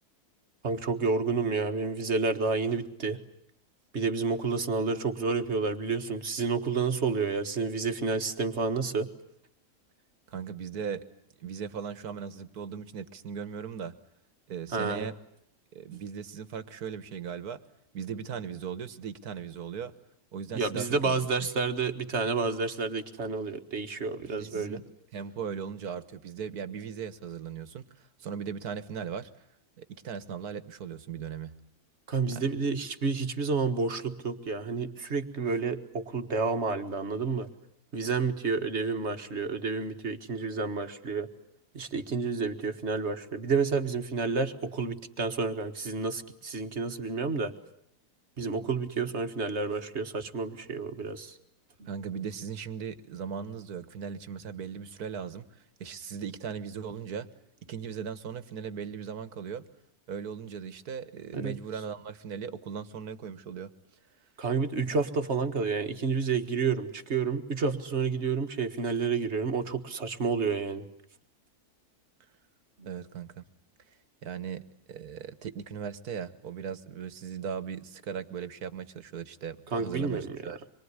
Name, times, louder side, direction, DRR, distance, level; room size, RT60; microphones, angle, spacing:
voice 1, 0.6-3.2 3.9-9.1 14.7-15.1 20.5-24.8 32.1-37.5 37.9-41.3 41.7-47.5 48.4-51.4 51.8-51.9 61.3-61.6 64.4-70.9 72.8-72.9 79.7-80.4, right 4 dB, 45° right, 7 dB, 1.9 m, -30 dB
voice 2, 10.3-11.0 11.4-14.0 14.5-15.1 15.8-17.6 17.9-19.9 20.3-21.2 24.4-24.8 25.1-27.8 28.2-29.3 29.8-31.6 32.3-32.4 51.9-55.5 55.8-57.3 57.7-59.7 60.1-63.7 72.8-73.4 74.2-80.6, right 7 dB, 75° right, 13 dB, 1.8 m, -38 dB
26.0 x 23.0 x 9.7 m, 0.71 s
omnidirectional pair, 1.6 m